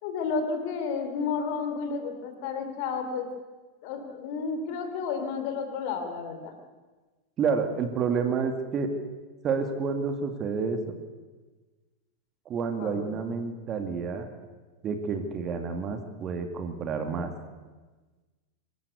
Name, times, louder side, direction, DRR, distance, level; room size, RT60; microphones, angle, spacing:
voice 1, 0.0-3.3 3.8-6.5 12.8-13.0, left 5 dB, 45° left, 6 dB, 3.4 m, -31 dB
voice 2, 7.4-8.9 9.4-11.0 12.5-14.3 14.8-17.3, right 5 dB, 30° right, 6 dB, 2.4 m, -29 dB
25.5 x 13.5 x 8.3 m, 1.3 s
figure-of-eight pair, 90°, 0 cm